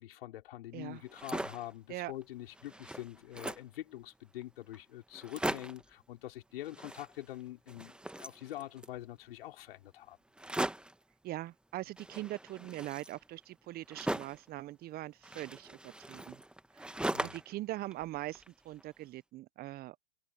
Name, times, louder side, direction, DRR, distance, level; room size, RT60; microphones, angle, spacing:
voice 1, 0.0-10.2 17.1-17.4, left 14 dB, 60° left, 5.2 m, -45 dB
sound 1, 1.0-1.7 2.2-2.3 2.5-3.8 4.4-4.5 4.7-4.8 5.1-5.9 6.6-7.4 7.7-9.0 10.4-11.0 12.0-14.5 15.2-17.6 17.9-18.8, right 1 dB, 5° right, 1.4 m, -39 dB
voice 2, 11.2-16.4 16.8-16.9 17.2-20.0, right 16 dB, 30° right, 0.9 m, -42 dB
hypercardioid pair, 105°, 32 cm